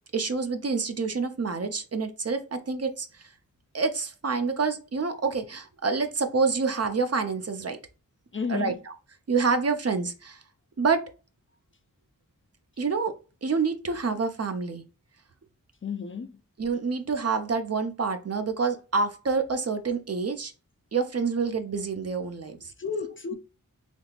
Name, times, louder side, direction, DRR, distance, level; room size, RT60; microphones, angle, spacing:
voice 1, 0.1-3.1 3.7-7.8 8.5-8.9 9.3-10.4 10.8-11.0 12.8-13.1 13.4-14.8 16.6-20.5 20.9-22.7, right 4 dB, 45° right, 0.6 m, -27 dB
voice 2, 8.3-8.8 15.8-16.3 22.8-23.3, left 5 dB, 35° left, 0.4 m, -31 dB
3.5 x 2.7 x 2.4 m
cardioid pair, 40°, 35 cm